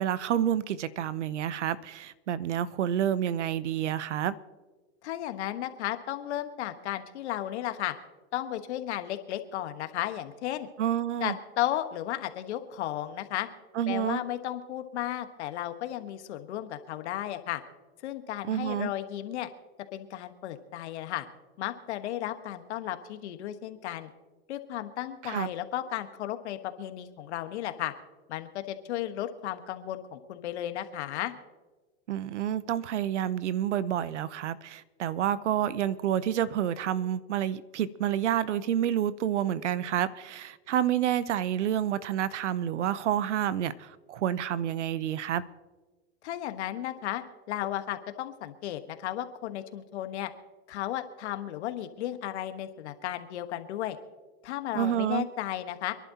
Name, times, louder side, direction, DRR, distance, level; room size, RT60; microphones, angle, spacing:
voice 1, 0.0-4.3 10.8-11.3 13.8-14.2 18.5-18.9 25.2-25.5 32.1-45.4 54.7-55.3, right 10 dB, 90° right, 0.8 m, -29 dB
voice 2, 5.0-7.9 8.3-10.7 11.2-13.5 13.9-17.6 18.0-19.5 19.9-21.3 21.6-24.1 24.5-27.9 28.3-31.3 46.2-50.3 50.7-54.0 54.4-55.9, left 12 dB, 75° left, 1.4 m, -34 dB
27.5 x 11.0 x 2.9 m
hypercardioid pair, 115°, 34 cm